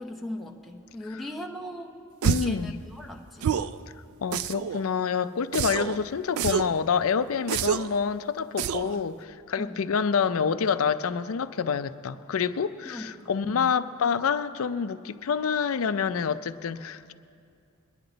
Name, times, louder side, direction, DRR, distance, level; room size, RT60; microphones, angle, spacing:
voice 1, 0.0-1.9 2.4-3.5 9.6-9.8 12.8-13.1 13.4-13.7, left 1 dB, ahead, 0 dB, 0.7 m, -38 dB
voice 2, 2.2-2.8 4.2-17.1, left 6 dB, 75° left, 13 dB, 0.5 m, -27 dB
sound 1, 2.2-2.6 3.4-3.8 4.3-4.8 5.5-6.0 6.4-6.8 7.5-8.0 8.6-9.0, right 8 dB, 85° right, 0.4 m, -27 dB
22.0 x 10.0 x 3.9 m, 2.4 s
head